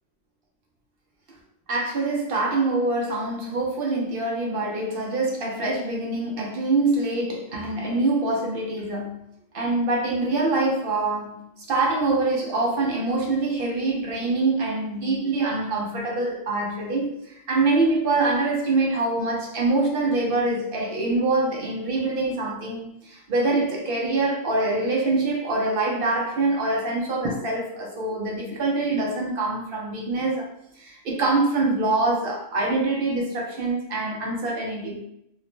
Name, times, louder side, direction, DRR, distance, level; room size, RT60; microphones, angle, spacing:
voice 1, 1.7-9.2 9.5-30.5 30.8-35.0, right 2 dB, 60° right, -1 dB, 0.6 m, -25 dB
2.5 x 2.0 x 2.9 m, 0.78 s
omnidirectional pair, 1.3 m